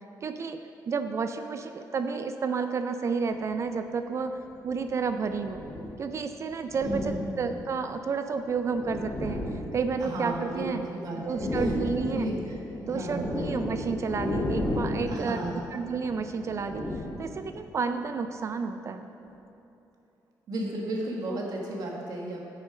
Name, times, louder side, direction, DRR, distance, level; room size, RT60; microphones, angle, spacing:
voice 1, 0.2-4.4 4.6-5.6 6.0-9.4 9.7-10.9 11.3-12.3 12.8-15.4 15.7-16.8 17.2-19.1, right 5 dB, 40° right, 8 dB, 0.4 m, -31 dB
sound 1, 3.4-3.6 4.6-6.1 6.6-7.8 8.4-10.8 11.1-17.7, left 1 dB, 25° left, 1.0 m, -34 dB
voice 2, 6.8-7.4 10.0-11.7 12.1-12.6 12.9-13.3 15.1-15.7 20.5-22.5, right 1 dB, 60° right, -1 dB, 1.6 m, -34 dB
9.2 x 6.5 x 5.0 m, 2.9 s
cardioid pair, 130°, 7 cm